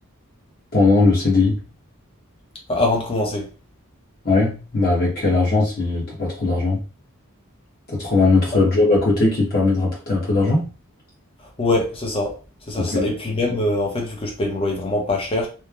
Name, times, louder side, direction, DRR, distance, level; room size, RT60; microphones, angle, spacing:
voice 1, 0.7-1.6 4.2-6.8 7.9-10.7 12.8-13.1, left 3 dB, 45° left, 1.0 m, -19 dB
voice 2, 2.7-3.5 11.4-12.4 12.7-15.5, left 2 dB, 25° left, 0.7 m, -23 dB
3.0 x 2.0 x 2.3 m
head